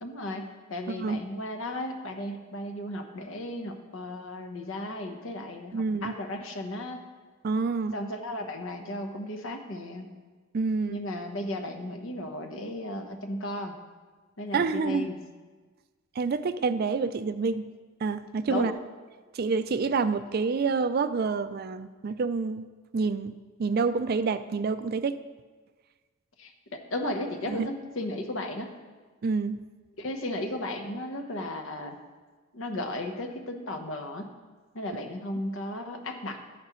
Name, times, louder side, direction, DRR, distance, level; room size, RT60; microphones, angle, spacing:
voice 1, 0.0-7.0 7.9-10.1 10.9-13.7 14.4-15.2 18.5-18.7 26.4-28.7 30.0-32.0 32.5-34.3 34.7-36.4, left 1 dB, 65° left, 5 dB, 1.0 m, -35 dB
voice 2, 0.9-1.2 5.7-6.1 7.4-8.0 10.5-11.0 14.5-15.1 16.2-17.7 18.0-18.7 19.3-22.6 22.9-25.2 27.0-27.1 27.5-27.7 29.2-29.6, right 4 dB, 45° right, 12 dB, 0.4 m, -28 dB
12.5 x 9.4 x 3.1 m, 1.4 s
head